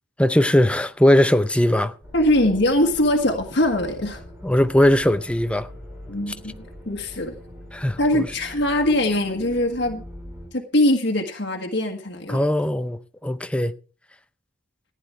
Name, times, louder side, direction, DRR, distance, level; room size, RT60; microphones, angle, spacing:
voice 1, 0.2-1.9 4.4-5.7 7.7-8.3 12.3-13.7, left 1 dB, 5° left, 0.6 m, -19 dB
sound 1, 2.0-10.5, equal, 10° right, 3.5 m, -42 dB
voice 2, 2.1-4.2 6.1-7.3 8.0-10.0 10.5-12.4, left 1 dB, 60° left, 1.6 m, -22 dB
14.5 x 10.0 x 4.5 m
head